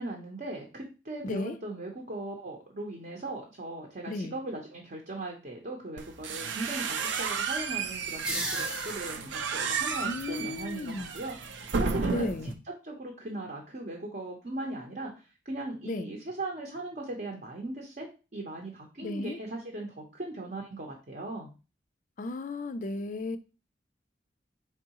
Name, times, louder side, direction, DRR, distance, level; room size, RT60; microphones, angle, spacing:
voice 1, 0.0-12.3 12.8-18.1 18.3-21.5, right 2 dB, 45° right, 0.7 m, -39 dB
voice 2, 1.2-1.6 4.1-4.4 10.0-11.1 12.1-12.5 15.9-16.1 19.0-19.4 22.2-23.4, left 2 dB, 45° left, 0.4 m, -34 dB
sound 1, 6.0-12.5, right 5 dB, 85° right, 0.5 m, -33 dB
sound 2, 8.0-9.6, equal, 5° right, 0.6 m, -36 dB
4.6 x 3.6 x 2.9 m
head